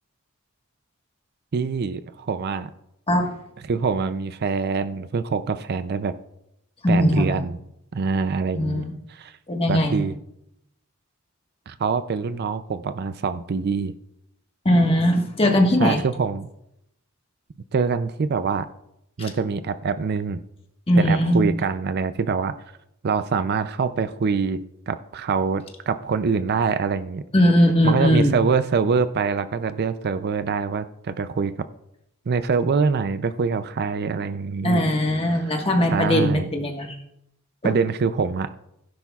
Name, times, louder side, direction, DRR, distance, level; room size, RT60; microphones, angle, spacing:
voice 1, 1.5-2.7 3.7-6.1 6.9-7.6 7.9-8.8 9.1-9.3 9.7-10.1 11.7-13.9 15.8-16.5 17.7-18.7 19.2-20.4 21.0-22.5 23.0-27.2 27.8-31.5 32.3-34.8 35.9-36.5 37.6-38.5, right 5 dB, 50° right, 12 dB, 0.4 m, -24 dB
voice 2, 6.8-7.4 8.5-8.9 9.5-10.0 14.6-16.0 19.2-19.3 20.9-21.5 27.3-28.4 34.6-36.9 37.6-37.7, equal, 25° left, 2 dB, 1.4 m, -20 dB
16.5 x 10.0 x 2.4 m, 0.80 s
head